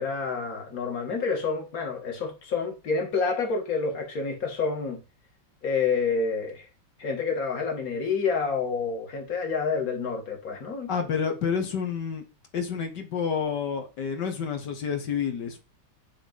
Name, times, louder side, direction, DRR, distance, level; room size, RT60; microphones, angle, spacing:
voice 1, 0.0-5.0 5.6-6.7 7.0-10.9, left 5 dB, 50° left, 2.5 m, -28 dB
voice 2, 10.9-12.2 12.5-15.6, left 6 dB, 70° left, 1.9 m, -29 dB
10.0 x 3.6 x 5.4 m
omnidirectional pair, 2.0 m